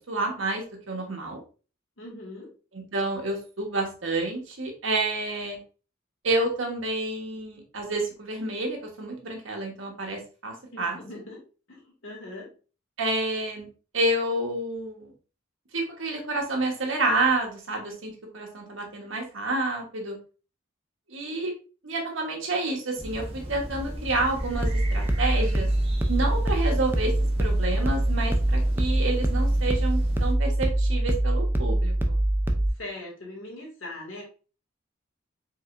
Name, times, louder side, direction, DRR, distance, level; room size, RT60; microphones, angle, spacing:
voice 1, 0.1-1.4 2.7-5.6 6.2-11.0 13.0-13.7 13.9-15.1 15.7-20.2 21.1-21.5 21.8-25.7 26.1-27.1 27.4-32.2, right 2 dB, 75° right, 1 dB, 1.4 m, -29 dB
voice 2, 2.0-2.5 10.7-12.5 32.7-34.2, left 2 dB, 80° left, -3 dB, 2.2 m, -41 dB
sound 1, 23.0-30.3, equal, 30° right, 1.0 m, -36 dB
sound 2, 24.5-32.7, right 1 dB, 10° right, 0.5 m, -24 dB
4.9 x 3.9 x 2.6 m, 0.36 s
head